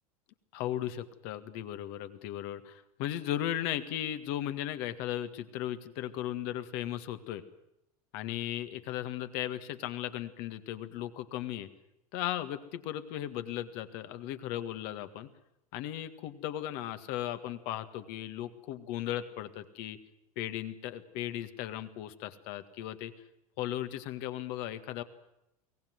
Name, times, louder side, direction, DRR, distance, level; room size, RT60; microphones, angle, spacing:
voice 1, 0.5-7.4 8.1-11.7 12.1-15.3 15.7-20.0 20.4-23.1 23.6-25.0, left 12 dB, 55° left, 10 dB, 1.9 m, -36 dB
23.0 x 18.0 x 9.5 m, 0.85 s
hypercardioid pair, 85°, 19 cm